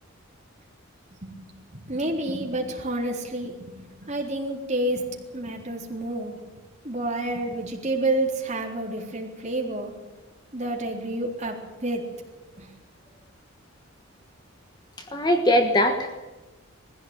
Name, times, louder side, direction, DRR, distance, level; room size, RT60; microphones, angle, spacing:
voice 1, 1.7-5.0 5.3-6.4 6.8-9.9 10.5-12.0 12.6-12.7, right 1 dB, 35° right, 0 dB, 3.8 m, -29 dB
voice 2, 15.1-16.2, left 1 dB, 20° left, 5 dB, 1.4 m, -21 dB
21.5 x 15.5 x 9.1 m, 1.1 s
head